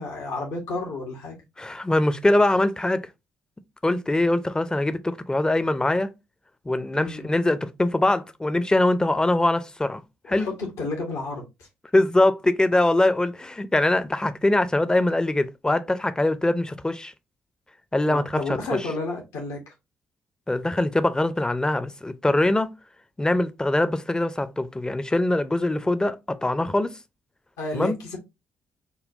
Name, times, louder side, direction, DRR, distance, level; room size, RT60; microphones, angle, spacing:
voice 1, 0.0-1.4 6.9-7.3 10.4-11.7 18.0-19.7 27.6-28.2, left 3 dB, 75° left, 1.0 m, -31 dB
voice 2, 1.6-3.1 3.8-6.1 6.7-10.0 10.3-10.5 11.9-17.1 17.9-18.9 20.5-22.7 23.2-26.9 27.7-28.0, left 1 dB, 15° left, 0.5 m, -23 dB
5.4 x 2.2 x 2.6 m
hypercardioid pair, 40°, 6 cm